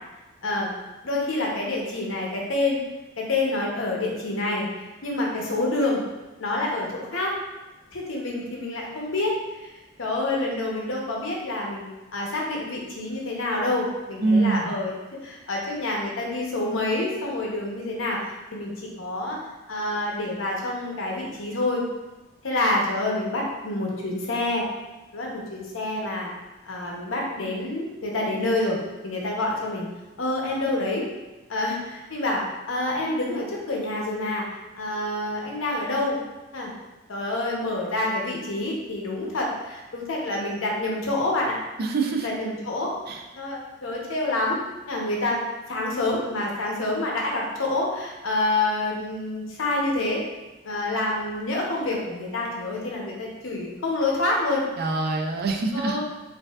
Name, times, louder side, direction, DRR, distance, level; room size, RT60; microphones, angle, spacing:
voice 1, 1.0-2.8 3.2-4.7 5.0-6.0 6.4-7.3 7.9-9.7 10.0-14.9 15.2-18.2 18.5-19.4 19.7-21.8 22.4-24.6 25.1-26.3 26.6-29.9 30.2-31.1 31.5-34.5 34.7-36.2 36.5-36.7 37.1-41.6 42.2-42.9 43.3-44.6 44.9-45.4 45.7-50.2 50.6-54.7 55.7-56.0, left 2 dB, 80° left, -2 dB, 0.8 m, -27 dB
voice 2, 14.2-14.7 41.8-42.3 43.1-43.2 54.8-56.0, right 3 dB, 50° right, 3 dB, 0.4 m, -24 dB
4.3 x 2.6 x 2.4 m, 1.1 s
head